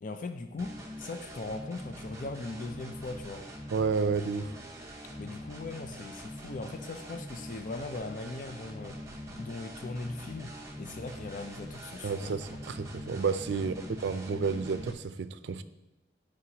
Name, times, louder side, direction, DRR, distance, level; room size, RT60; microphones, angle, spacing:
voice 1, 0.0-3.5 5.2-12.4 13.6-13.9, left 3 dB, 50° left, 0.4 m, -40 dB
sound 1, 0.6-14.9, equal, 15° right, 0.8 m, -44 dB
voice 2, 3.7-4.6 12.0-15.6, right 5 dB, 80° right, 0.4 m, -31 dB
11.0 x 4.9 x 2.8 m
head